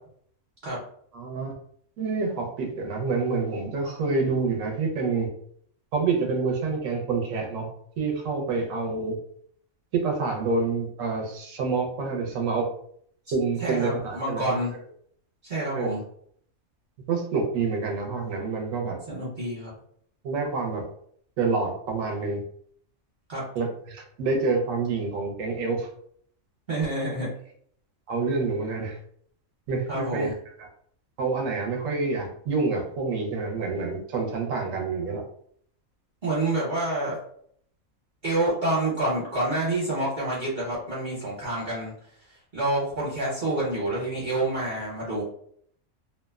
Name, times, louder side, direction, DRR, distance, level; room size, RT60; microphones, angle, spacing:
voice 1, 1.1-1.5 2.0-5.3 5.9-7.7 8.0-9.2 9.9-12.7 13.3-14.6 15.7-15.9 17.1-19.0 20.2-20.8 21.4-22.4 23.6-25.9 28.1-29.0 29.7-30.3 31.2-35.2, right 4 dB, 70° right, 1 dB, 1.0 m, -27 dB
voice 2, 13.6-14.8 15.4-16.0 19.1-19.7 23.3-23.4 26.7-27.3 29.9-30.3 36.2-37.2 38.2-41.9 42.3-45.2, right 1 dB, 45° right, -7 dB, 1.1 m, -28 dB
2.8 x 2.1 x 2.3 m, 0.64 s
omnidirectional pair, 1.5 m